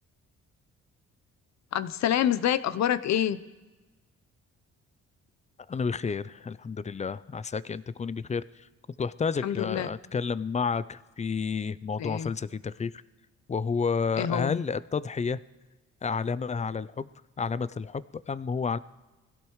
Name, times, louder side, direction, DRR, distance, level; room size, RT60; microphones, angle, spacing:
voice 1, 1.7-3.4 9.4-9.9 12.0-12.3 14.2-14.6, left 10 dB, 65° left, 14 dB, 0.8 m, -27 dB
voice 2, 5.7-8.4 9.0-12.9 13.5-15.4 16.0-17.1 17.4-18.8, left 5 dB, 25° left, 17 dB, 0.5 m, -30 dB
22.0 x 16.5 x 3.1 m, 1.2 s
cardioid pair, 90°, 30 cm